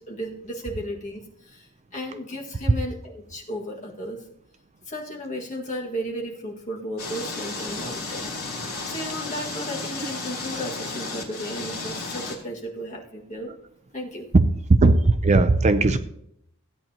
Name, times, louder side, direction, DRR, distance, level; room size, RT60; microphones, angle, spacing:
voice 1, 0.0-1.7 1.9-4.2 4.9-8.4 8.9-13.6 13.9-14.3, equal, 35° left, -2 dB, 1.8 m, -34 dB
sound 1, 7.0-12.4, left 3 dB, 75° left, 2.9 m, -33 dB
voice 2, 14.8-16.0, right 3 dB, 30° right, 11 dB, 0.4 m, -17 dB
16.0 x 8.9 x 2.9 m, 0.72 s
head